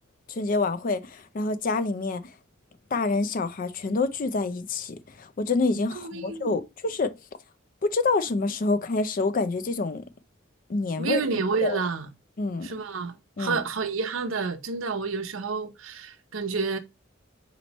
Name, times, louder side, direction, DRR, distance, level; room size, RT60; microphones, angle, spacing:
voice 1, 0.3-2.2 2.9-7.1 7.8-10.0 10.7-11.2 11.6-11.8 12.4-12.7 13.4-13.6, left 3 dB, 40° left, 0.4 m, -27 dB
voice 2, 6.0-6.6 11.0-12.1 12.6-16.8, right 5 dB, 75° right, 0.7 m, -29 dB
4.3 x 3.0 x 4.0 m
head